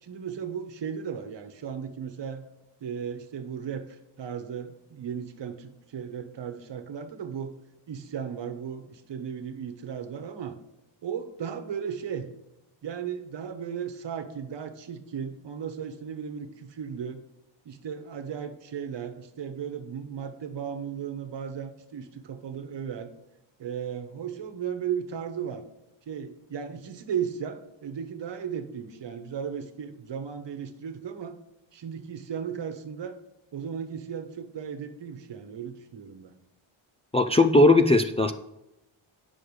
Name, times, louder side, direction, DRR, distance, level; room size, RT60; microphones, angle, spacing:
voice 1, 0.0-2.4 2.8-7.6 7.9-10.6 11.0-12.3 12.8-17.2 17.6-23.1 23.6-25.6 26.1-31.4 31.7-33.2 33.5-36.3, right 7 dB, 60° right, 7 dB, 1.2 m, -36 dB
voice 2, 37.1-38.3, left 2 dB, 15° left, 5 dB, 0.4 m, -18 dB
10.5 x 6.3 x 4.8 m, 0.88 s
wide cardioid pair, 150°, 49 cm